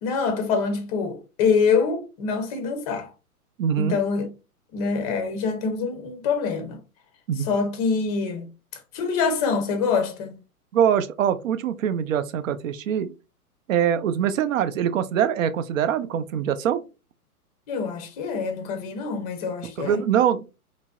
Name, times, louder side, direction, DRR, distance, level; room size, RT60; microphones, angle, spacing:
voice 1, 0.0-3.1 3.8-4.3 4.7-6.8 7.4-8.5 8.9-10.4 17.7-20.0, left 5 dB, 25° left, 0.5 m, -25 dB
voice 2, 3.6-4.0 7.3-7.5 10.7-13.1 13.7-16.8 19.6-20.5, right 9 dB, 60° right, 0.5 m, -23 dB
3.0 x 2.5 x 2.2 m
hypercardioid pair, 120°, 45 cm